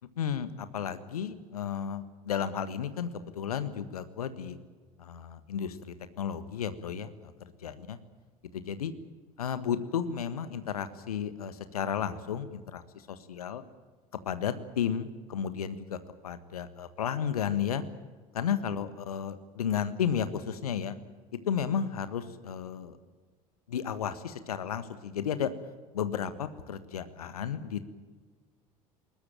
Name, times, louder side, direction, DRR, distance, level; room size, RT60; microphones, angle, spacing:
voice 1, 0.2-4.6 5.0-8.0 8.5-8.9 9.4-12.8 13.1-13.6 14.2-17.8 18.3-21.0 21.3-23.0 23.7-25.5 25.9-27.8, left 8 dB, 70° left, 12 dB, 1.5 m, -33 dB
21.5 x 20.0 x 9.0 m, 1.4 s
figure-of-eight pair, 70°, 20 cm